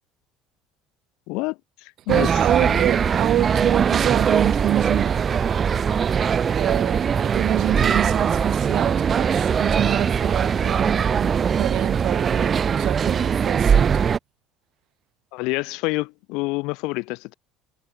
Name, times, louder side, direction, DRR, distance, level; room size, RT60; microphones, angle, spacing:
voice 1, 1.3-2.3 2.6-2.8 15.3-17.3, left 26 dB, 70° left, 0.5 m, -28 dB
sound 1, 2.1-14.2, right 7 dB, 30° right, 0.4 m, -21 dB
voice 2, 2.1-5.3 6.5-14.0, right 13 dB, 50° right, 1.4 m, -26 dB
cardioid pair, 145°, 0 cm